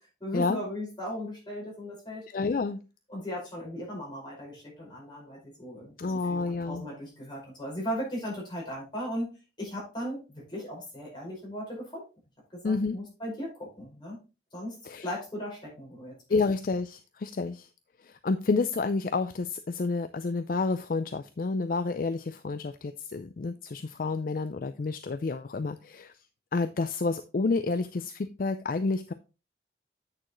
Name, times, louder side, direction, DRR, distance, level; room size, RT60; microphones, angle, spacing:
voice 1, 0.2-2.2 3.1-9.3 9.6-12.0 12.5-14.2 14.5-14.7 15.0-16.1, equal, 25° left, -4 dB, 5.3 m, -37 dB
voice 2, 2.3-2.8 6.0-6.9 12.6-13.0 14.9-15.1 16.3-17.7 18.0-26.1 26.5-29.1, left 3 dB, 50° left, 10 dB, 0.4 m, -29 dB
8.7 x 6.3 x 3.1 m, 0.30 s
head